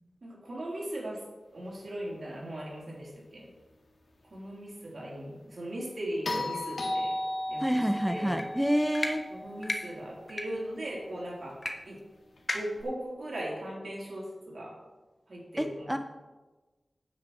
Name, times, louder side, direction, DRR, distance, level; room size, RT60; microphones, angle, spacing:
voice 1, 0.2-1.2 1.5-3.5 4.3-7.2 7.5-8.4 9.3-11.6 11.9-12.0 12.5-14.7 15.3-16.0, right 1 dB, 55° right, -4 dB, 3.5 m, -38 dB
sound 1, 6.2-10.5 12.8-12.9, left 1 dB, 70° left, 1.8 m, -35 dB
voice 2, 7.6-9.2 15.6-16.0, equal, 5° right, 7 dB, 0.5 m, -28 dB
sound 2, 8.3-8.5 8.9-9.1 9.6-9.8 10.3-10.5 11.6-11.7 12.0-12.1 12.5-12.8, left 2 dB, 40° left, 1.3 m, -32 dB
9.6 x 8.1 x 4.8 m, 1.2 s
wide cardioid pair, 70°, 0 cm